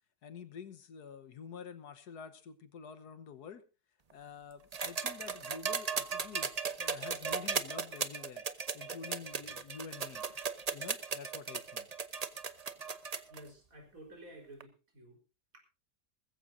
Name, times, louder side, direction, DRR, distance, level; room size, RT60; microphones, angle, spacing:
voice 1, 0.2-3.6 4.1-6.5 6.8-8.4 8.7-10.2 10.7-11.9, left 6 dB, 75° left, 12 dB, 1.7 m, -48 dB
sound 1, 4.7-13.4 14.6-14.7, right 5 dB, 35° right, 0.7 m, -36 dB
voice 2, 13.2-15.2, right 1 dB, 55° right, 2 dB, 4.8 m, -52 dB
20.5 x 15.0 x 2.7 m, 0.30 s
omnidirectional pair, 1.7 m